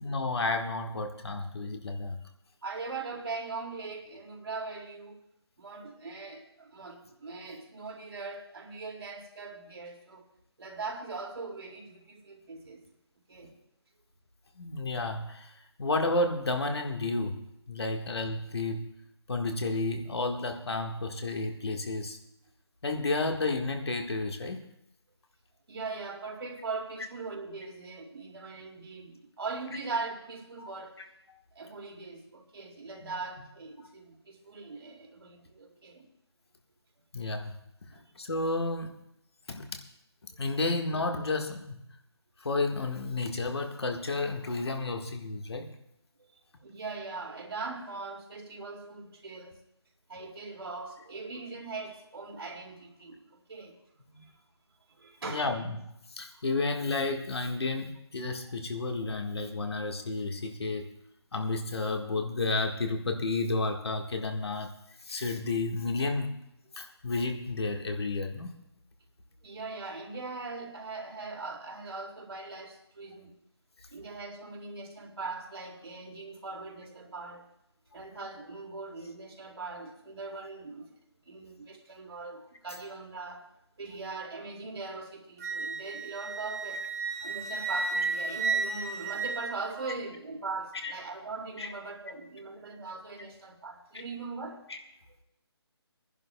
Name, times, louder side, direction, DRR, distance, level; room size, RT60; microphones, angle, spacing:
voice 1, 0.0-2.2 14.6-18.9 19.3-22.2 22.8-24.6 30.6-30.7 33.0-33.1 37.1-37.6 38.1-38.9 39.5-39.8 40.4-41.8 42.4-45.7 54.1-54.2 55.2-55.8 56.2-60.9 61.3-64.7 65.0-66.3 66.8-68.5 90.8-90.9 91.6-91.7 94.7-94.8, left 3 dB, 65° left, 4 dB, 1.5 m, -31 dB
voice 2, 2.6-5.2 5.6-10.2 10.6-12.8 13.3-13.5 25.7-31.0 31.5-36.1 37.9-38.0 46.2-46.3 46.6-49.5 50.1-53.8 55.0-55.6 58.3-58.4 58.8-58.9 69.4-73.4 73.9-77.5 77.9-80.9 81.3-83.5 83.8-86.9 87.2-94.6, right 3 dB, 60° right, 2 dB, 2.3 m, -40 dB
Wind instrument woodwind instrument, 85.4-90.0, right 4 dB, 35° right, 1.0 m, -33 dB
25.5 x 10.5 x 2.3 m, 0.78 s
figure-of-eight pair, 160°, 14 cm